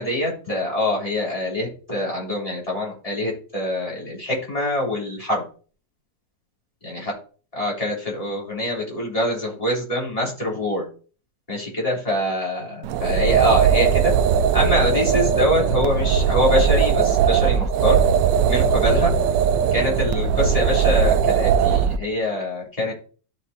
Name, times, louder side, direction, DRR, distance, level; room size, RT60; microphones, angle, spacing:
voice 1, 0.0-5.4 7.5-10.8 11.5-14.1 14.5-18.0 18.5-19.1 19.7-23.1, left 1 dB, 20° left, -4 dB, 3.6 m, -24 dB
sound 1, 12.8-22.0, right 8 dB, 75° right, 1.2 m, -19 dB
13.0 x 5.3 x 2.8 m, 0.40 s
omnidirectional pair, 2.0 m